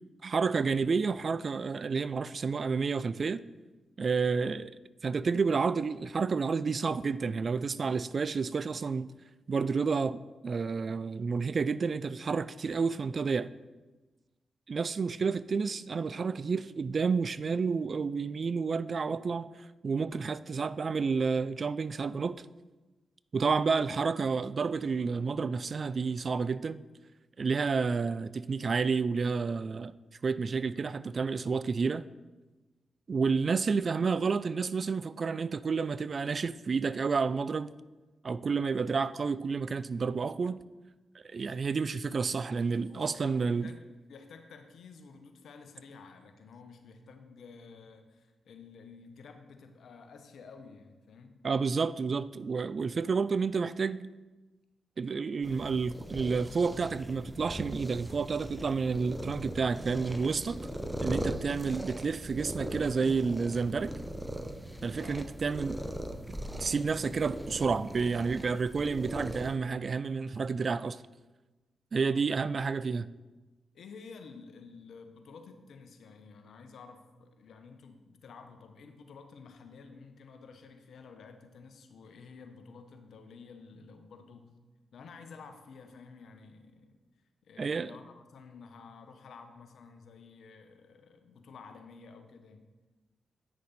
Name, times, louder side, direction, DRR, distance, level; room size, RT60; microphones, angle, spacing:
voice 1, 0.2-3.4 4.0-4.7 5.0-9.1 9.5-13.5 14.7-22.5 23.3-26.8 27.4-29.9 30.2-32.0 33.1-37.7 38.2-40.6 41.2-43.7 51.4-54.1 55.0-60.6 61.0-63.9 64.8-65.8 66.6-71.0 71.9-73.1 87.6-87.9, right 5 dB, 55° right, 0.3 m, -30 dB
voice 2, 42.9-43.8 44.1-51.4 65.0-65.2 72.0-72.3 73.7-84.5 84.9-87.0 87.5-92.7, left 5 dB, 75° left, 0.9 m, -51 dB
sound 1, 55.4-69.5, equal, 5° right, 0.9 m, -39 dB
9.2 x 6.5 x 4.2 m
supercardioid pair, 40°, 0 cm